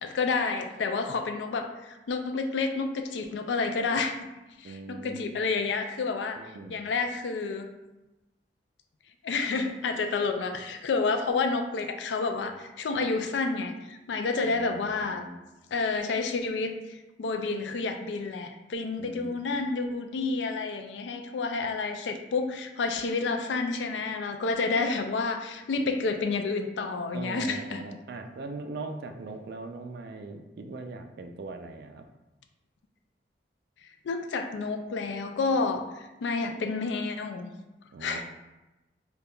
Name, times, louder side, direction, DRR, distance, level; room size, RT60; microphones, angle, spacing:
voice 1, 0.0-4.3 4.6-6.4 6.7-7.7 9.2-15.2 15.7-27.8 34.0-37.5 38.0-38.2, left 4 dB, 80° left, 6 dB, 0.4 m, -29 dB
voice 2, 4.6-5.3 6.4-6.8 14.5-15.4 19.0-19.4 27.1-32.0 37.9-38.2, right 3 dB, 60° right, 6 dB, 0.4 m, -40 dB
5.2 x 2.3 x 2.2 m, 1.0 s
head